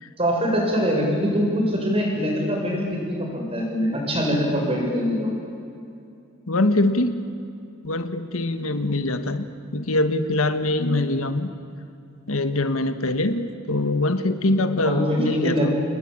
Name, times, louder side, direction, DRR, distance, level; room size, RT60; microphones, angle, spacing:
voice 1, 0.2-5.3 14.8-15.7, equal, 30° right, -1 dB, 7.7 m, -23 dB
voice 2, 6.5-7.2 7.8-9.5 9.7-11.5 12.3-15.7, left 2 dB, 85° left, 9 dB, 1.5 m, -23 dB
28.5 x 20.5 x 8.9 m, 2.5 s
head